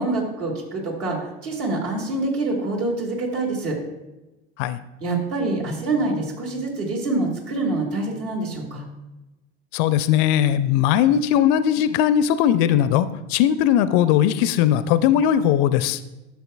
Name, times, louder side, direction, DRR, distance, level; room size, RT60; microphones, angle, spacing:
voice 1, 0.0-3.8 5.0-8.8, right 2 dB, 65° right, 0 dB, 2.3 m, -26 dB
voice 2, 9.7-16.0, left 10 dB, 45° left, 14 dB, 0.4 m, -19 dB
11.5 x 6.9 x 2.3 m, 1.0 s
figure-of-eight pair, 75°, 35 cm